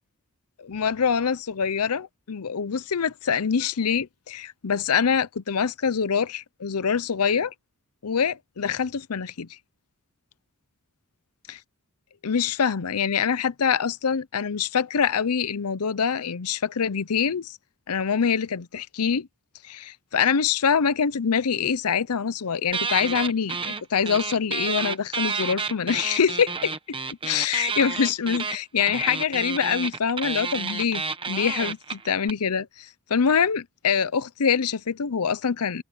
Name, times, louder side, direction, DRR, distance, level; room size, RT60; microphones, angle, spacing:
voice 1, 0.6-7.5 8.0-9.5 11.5-11.6 12.2-17.6 17.9-19.3 19.7-26.7 27.2-35.8, left 6 dB, 85° left, 0.7 m, -25 dB
sound 1, 22.7-23.8 24.1-32.3, right 5 dB, 25° right, 1.1 m, -30 dB
head